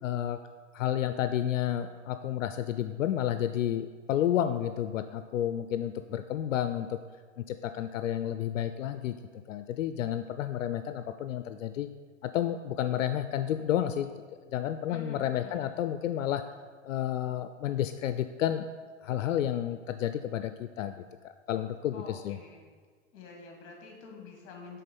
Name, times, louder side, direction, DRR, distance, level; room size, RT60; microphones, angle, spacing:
voice 1, 0.0-0.4 0.7-7.0 7.4-9.1 9.5-11.9 12.2-14.1 14.5-16.4 16.8-18.7 19.0-22.4, left 11 dB, 85° left, 10 dB, 0.5 m, -31 dB
voice 2, 14.9-15.7 21.9-22.7 23.1-24.8, left 4 dB, 35° left, 1 dB, 1.7 m, -47 dB
8.4 x 3.7 x 5.4 m, 1.6 s
hypercardioid pair, 135°, 38 cm